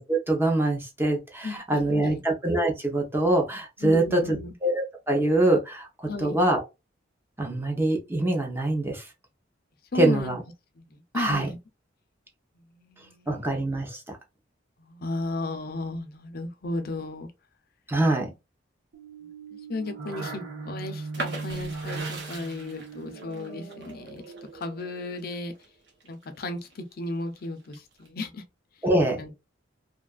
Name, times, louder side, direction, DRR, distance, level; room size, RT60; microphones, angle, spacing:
voice 1, 0.0-6.6 7.4-9.0 10.0-10.4 11.1-11.5 13.3-14.2 17.9-18.3 28.8-29.2, right 1 dB, 10° right, 0.7 m, -24 dB
voice 2, 1.4-2.2 3.8-4.5 6.0-6.4 9.9-10.4 10.8-11.6 12.6-13.6 14.8-17.3 19.7-24.2 24.5-25.5 26.0-28.4 29.1-29.3, left 2 dB, 55° left, 0.6 m, -35 dB
sound 1, 18.9-25.3, right 3 dB, 90° right, 0.9 m, -39 dB
sound 2, 21.1-26.8 27.2-28.1, right 2 dB, 65° right, 1.0 m, -40 dB
2.7 x 2.4 x 2.3 m
head